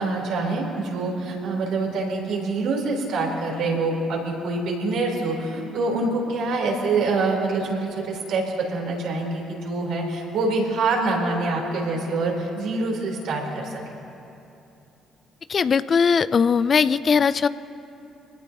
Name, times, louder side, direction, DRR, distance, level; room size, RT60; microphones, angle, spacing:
voice 1, 0.0-8.4 8.7-13.8, right 3 dB, 65° right, -1 dB, 4.0 m, -25 dB
voice 2, 15.5-17.5, left 6 dB, 45° left, 16 dB, 0.5 m, -19 dB
25.5 x 18.0 x 3.1 m, 2.8 s
hypercardioid pair, 50°, 0 cm